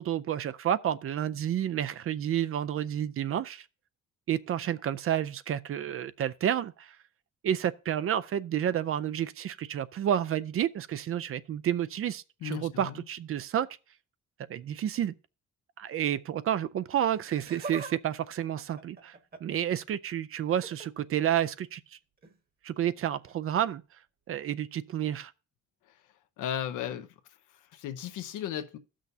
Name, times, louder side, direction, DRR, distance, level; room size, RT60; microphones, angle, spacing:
voice 1, 0.0-3.6 4.3-7.0 7.4-13.7 14.5-15.1 15.8-19.1 19.4-21.8 22.6-23.8 24.3-25.3, right 10 dB, 45° right, 0.4 m, -30 dB
voice 2, 12.4-13.0 26.4-27.1 27.7-28.8, left 10 dB, 90° left, 0.8 m, -35 dB
Laughter, 17.1-17.9 18.2-19.6 20.5-20.9 22.2-22.4 23.3-23.4, right 4 dB, 30° right, 1.2 m, -42 dB
16.0 x 6.2 x 2.7 m
cardioid pair, 90°, 30 cm